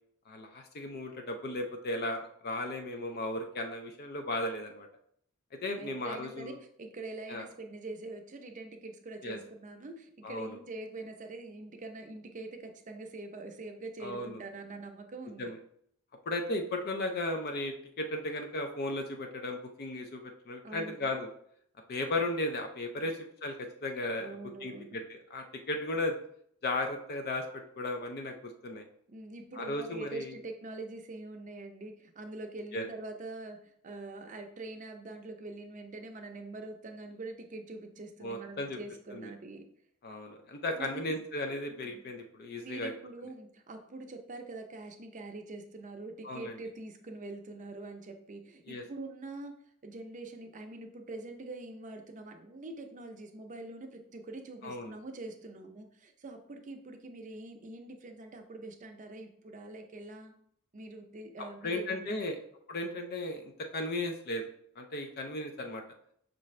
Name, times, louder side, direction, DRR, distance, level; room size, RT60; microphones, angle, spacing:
voice 1, 0.3-4.9 5.6-6.5 7.3-7.4 9.2-9.4 10.2-10.6 14.0-14.4 15.4-15.6 16.3-21.3 21.9-26.2 26.6-28.8 29.5-30.3 32.7-32.8 38.2-38.8 39.1-39.3 40.0-42.9 46.2-46.6 48.7-48.8 54.6-54.9 61.6-62.4 62.7-64.5 64.8-65.8, left 2 dB, 45° left, 5 dB, 0.4 m, -35 dB
voice 2, 5.8-15.5 20.6-21.1 23.0-23.1 24.2-25.0 29.1-39.6 40.8-41.1 41.7-42.0 42.6-60.3 60.7-62.2, right 2 dB, 35° right, 4 dB, 0.5 m, -44 dB
5.6 x 2.6 x 3.1 m, 0.67 s
head